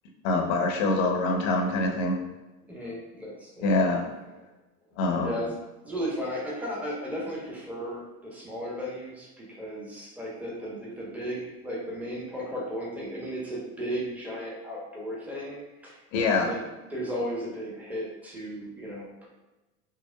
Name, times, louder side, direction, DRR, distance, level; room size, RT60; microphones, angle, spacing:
voice 1, 0.2-2.1 3.6-4.0 5.0-5.3 16.1-16.5, left 2 dB, 55° left, 2 dB, 0.8 m, -24 dB
voice 2, 2.7-3.7 5.2-5.5 5.8-16.6 16.9-19.3, equal, 5° right, -4 dB, 0.9 m, -35 dB
4.7 x 2.1 x 2.2 m, 1.1 s
hypercardioid pair, 80°, 46 cm